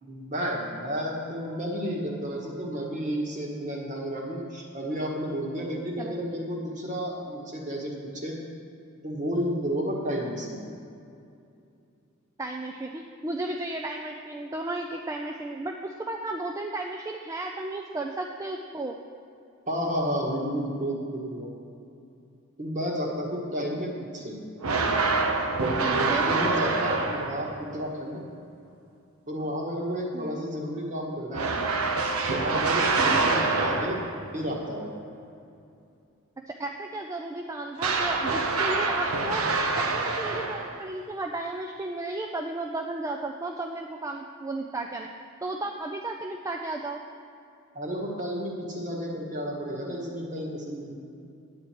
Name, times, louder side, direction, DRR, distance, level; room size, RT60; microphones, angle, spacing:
voice 1, 0.0-8.4 9.0-10.6 19.7-21.5 22.6-24.4 25.8-28.2 29.3-31.6 32.3-34.0 34.3-34.9 47.7-51.0, equal, 35° right, -1 dB, 1.5 m, -32 dB
voice 2, 12.4-19.0 25.8-26.3 30.1-30.5 33.0-33.3 36.5-39.4 39.8-45.1 45.4-47.0, right 2 dB, 15° right, 2 dB, 0.4 m, -34 dB
sound 1, 24.6-27.6 31.3-34.2 37.8-40.9, right 3 dB, 90° right, 0.9 m, -26 dB
10.0 x 9.0 x 4.4 m, 2.5 s
head